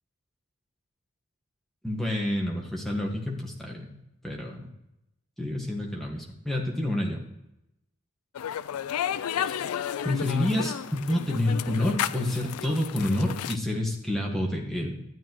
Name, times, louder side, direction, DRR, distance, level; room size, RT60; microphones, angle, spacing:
voice 1, 1.8-3.9 4.2-4.7 5.4-7.2 9.4-9.7 10.0-15.0, left 1 dB, ahead, -2 dB, 1.5 m, -28 dB
sound 1, 8.3-13.6, left 9 dB, 90° left, 0.4 m, -32 dB
12.0 x 8.7 x 3.0 m, 0.86 s
head